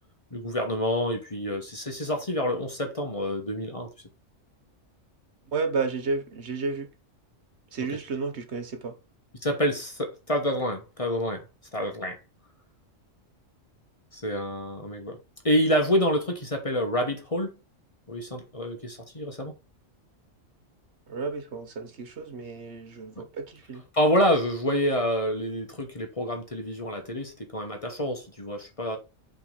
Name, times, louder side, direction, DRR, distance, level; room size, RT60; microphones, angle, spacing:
voice 1, 0.3-3.9 9.4-11.4 11.7-12.2 14.1-15.2 15.4-17.5 18.1-19.5 23.2-23.3 23.9-29.0, equal, 30° left, 1.2 m, -27 dB
voice 2, 5.5-6.9 7.7-8.9 21.1-23.8, right 4 dB, 60° right, 1.2 m, -32 dB
5.7 x 3.5 x 5.3 m
omnidirectional pair, 1.3 m